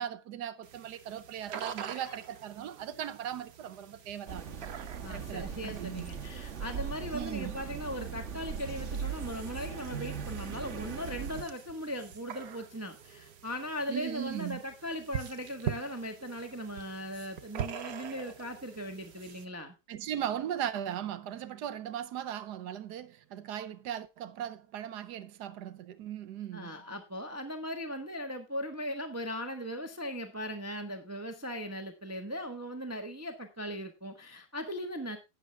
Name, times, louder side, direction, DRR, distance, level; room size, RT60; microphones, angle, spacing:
voice 1, 0.0-4.5 5.1-6.1 7.1-7.5 13.9-14.6 19.9-26.8, right 10 dB, 85° right, 1.3 m, -38 dB
sound 1, 0.6-19.5, right 8 dB, 65° right, 1.4 m, -45 dB
sound 2, 4.3-11.4, right 7 dB, 45° right, 1.5 m, -39 dB
voice 2, 5.0-19.8 26.5-35.2, equal, 10° right, 1.1 m, -38 dB
12.5 x 9.1 x 3.4 m
omnidirectional pair, 1.7 m